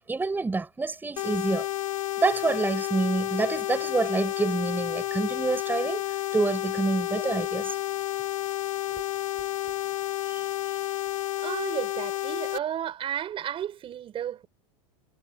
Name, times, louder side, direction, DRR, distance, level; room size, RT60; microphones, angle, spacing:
voice 1, 0.1-1.7 2.2-6.0 6.3-7.8 8.9-9.0 9.7-9.8 10.3-10.4, right 3 dB, 10° right, 6.2 m, -27 dB
sound 1, 1.2-12.6, left 15 dB, 85° left, 1.7 m, -31 dB
voice 2, 11.4-14.5, right 10 dB, 35° right, 5.3 m, -33 dB
supercardioid pair, 120°, 17 cm